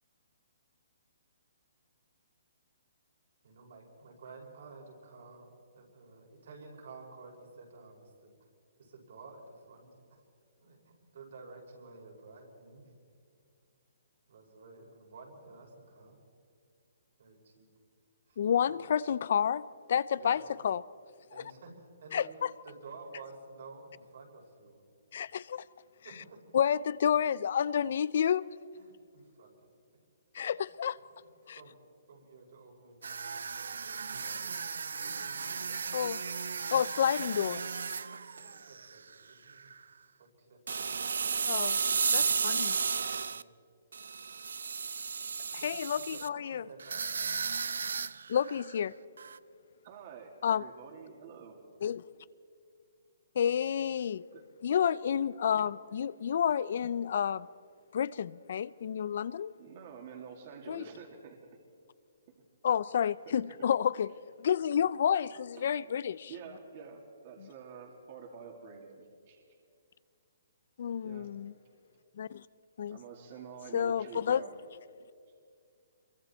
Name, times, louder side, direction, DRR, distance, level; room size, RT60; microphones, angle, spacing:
voice 1, 3.4-8.5 8.8-10.2 10.6-12.9 14.3-16.2 17.2-17.7 18.2-18.4 18.7-18.8 20.2-20.5 21.3-22.3 22.6-24.8 26.0-26.5 28.7-29.6 30.4-30.5 31.2-31.7 32.1-36.4 38.4-39.7 40.2-40.9 42.9-43.6 45.5-45.6 45.9-47.2 47.5-47.8, right 3 dB, 65° right, 5.7 m, -53 dB
voice 2, 18.4-19.6 19.9-20.8 22.1-22.2 25.1-25.6 26.5-28.5 30.3-31.0 31.5-31.6 35.9-36.2 36.7-37.6 41.5-41.8 42.1-42.8 45.5-46.7 48.3-48.9 50.4-50.6 51.8-52.0 53.4-54.2 54.6-57.5 57.9-59.5 60.7-60.8 62.6-66.3 70.8-71.5 72.2-72.4 72.8-73.0 73.7-74.4, left 8 dB, 60° left, 0.4 m, -30 dB
sound 1, 33.0-39.1 39.5-39.8 40.7-43.4 43.9-46.3 46.8-48.8 49.2-49.4, right 5 dB, 80° right, 0.5 m, -34 dB
voice 3, 49.8-51.6 54.3-54.4 55.5-55.6 59.6-61.4 65.6-65.7 66.3-69.4 71.0-71.3 72.9-74.5, right 6 dB, 40° right, 2.5 m, -48 dB
26.0 x 23.0 x 4.4 m
hypercardioid pair, 155°, 0 cm